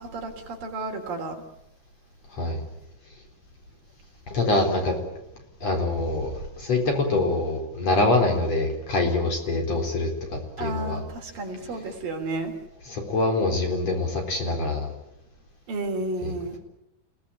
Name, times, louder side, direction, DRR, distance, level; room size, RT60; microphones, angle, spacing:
voice 1, 0.0-1.4 10.6-12.5 15.7-16.6, right 3 dB, 60° right, 2 dB, 5.0 m, -32 dB
voice 2, 2.3-2.6 4.3-5.0 5.6-11.0 12.9-14.9 16.2-16.3, left 2 dB, 40° left, 2 dB, 5.0 m, -25 dB
29.5 x 18.0 x 8.9 m, 0.86 s
omnidirectional pair, 4.6 m